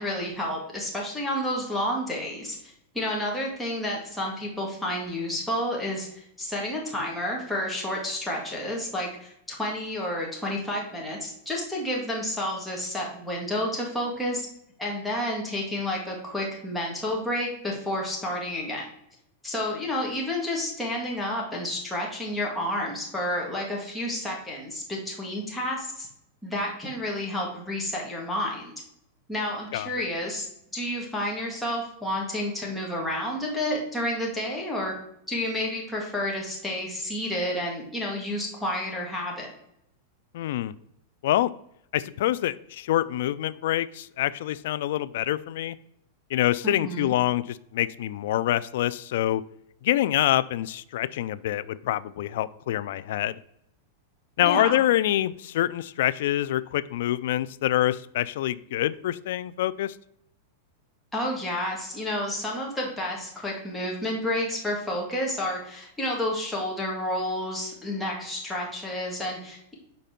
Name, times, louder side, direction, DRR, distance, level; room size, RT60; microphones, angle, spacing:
voice 1, 0.0-14.5 14.8-18.9 19.4-26.1 26.4-28.7 29.3-30.5 30.7-34.9 35.3-39.5 46.6-47.1 54.4-54.8 61.1-69.7, left 1 dB, 5° left, -3 dB, 1.8 m, -30 dB
voice 2, 29.7-30.0 40.3-40.7 41.2-41.5 41.9-45.8 46.3-49.4 49.8-53.4 54.4-59.9, left 13 dB, 70° left, 18 dB, 0.3 m, -26 dB
5.3 x 4.1 x 5.8 m, 0.75 s
supercardioid pair, 145°, 0 cm